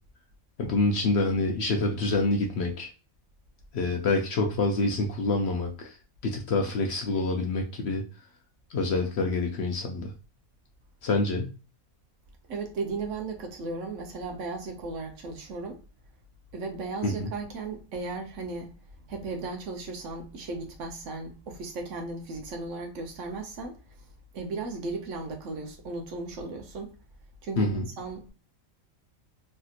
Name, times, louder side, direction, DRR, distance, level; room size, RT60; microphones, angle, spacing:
voice 1, 0.6-2.9 3.7-6.0 6.2-8.0 8.7-10.1 11.0-11.5 17.0-17.1 27.6-27.8, left 3 dB, 65° left, 0.7 m, -26 dB
voice 2, 12.5-15.8 16.5-18.7 19.1-24.1 24.3-27.0 27.4-28.3, right 3 dB, 65° right, 1.0 m, -36 dB
3.3 x 2.8 x 2.3 m
omnidirectional pair, 1.5 m